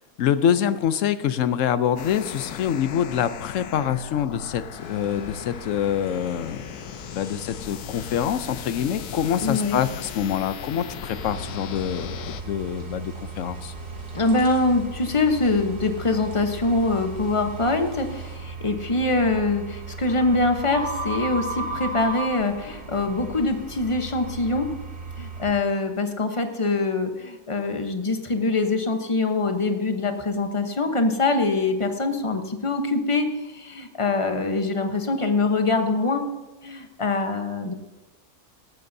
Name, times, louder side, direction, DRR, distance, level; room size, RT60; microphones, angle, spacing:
voice 1, 0.2-6.6 7.1-13.7, left 9 dB, 65° left, 12 dB, 0.9 m, -25 dB
sound 1, 2.0-12.4, left 9 dB, 80° left, 1.2 m, -38 dB
sound 2, 4.7-18.4, right 1 dB, 80° right, 3.1 m, -46 dB
voice 2, 9.4-9.8 14.1-24.7 25.2-36.2 36.6-37.7, left 3 dB, 25° left, 6 dB, 0.8 m, -24 dB
sound 3, 11.0-25.5, right 3 dB, 50° right, 2.2 m, -36 dB
18.0 x 13.0 x 2.7 m, 1.1 s
omnidirectional pair, 1.7 m